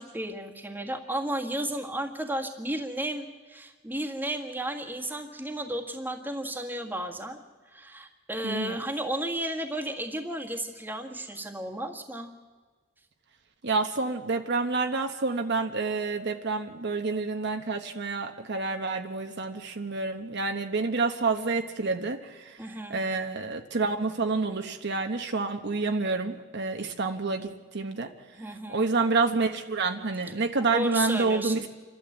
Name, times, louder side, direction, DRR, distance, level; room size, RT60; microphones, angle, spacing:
voice 1, 0.0-7.4 7.7-12.3 22.6-23.0 28.3-28.8 30.7-31.7, right 1 dB, 10° right, 2 dB, 1.7 m, -33 dB
voice 2, 8.4-8.8 13.6-22.6 22.9-28.1 28.7-31.6, right 3 dB, 60° right, 6 dB, 1.1 m, -28 dB
28.0 x 12.5 x 8.1 m, 1.4 s
head